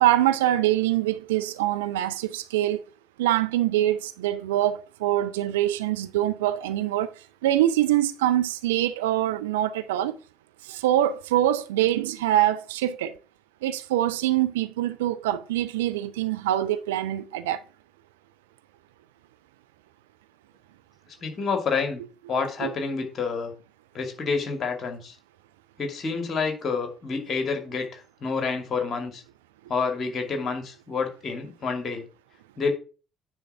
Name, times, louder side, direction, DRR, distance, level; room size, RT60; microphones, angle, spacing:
voice 1, 0.0-2.8 3.2-7.1 7.4-10.2 10.6-13.1 13.6-17.6 22.6-22.7, right 13 dB, 75° right, 0.4 m, -24 dB
voice 2, 21.2-22.0 22.3-23.5 23.9-25.1 25.8-29.2 29.7-32.1 32.6-32.7, left 5 dB, 45° left, 2.4 m, -28 dB
9.6 x 3.8 x 5.7 m
figure-of-eight pair, 50°, 0 cm